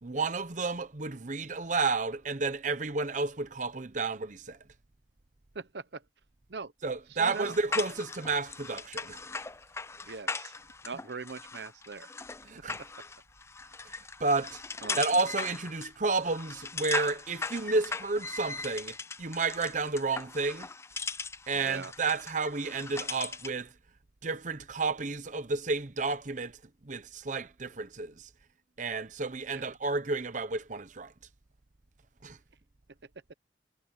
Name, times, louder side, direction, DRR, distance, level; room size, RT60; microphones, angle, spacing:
voice 1, 0.0-4.6 6.8-9.2 12.5-12.8 13.9-14.6 14.9-20.7 21.5-23.7 24.2-26.6 26.8-28.3 28.8-31.1 32.2-32.4, right 3 dB, 45° right, 0.9 m, -31 dB
voice 2, 5.5-6.0 6.5-6.7 7.1-7.6 10.1-10.6 10.8-12.1 14.8-15.0 21.6-21.9 29.5-29.8, right 4 dB, 75° right, 0.9 m, -41 dB
sound 1, 7.2-23.6, left 4 dB, 15° left, 0.5 m, -39 dB
head